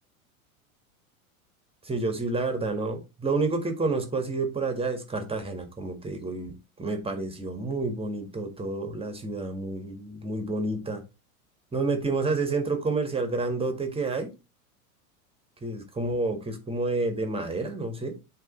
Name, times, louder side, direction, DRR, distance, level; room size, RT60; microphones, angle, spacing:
voice 1, 1.8-11.0 11.7-14.3 15.6-18.1, right 3 dB, 15° right, 5 dB, 1.7 m, -29 dB
8.1 x 3.5 x 4.2 m, 0.27 s
hypercardioid pair, 100°, 43 cm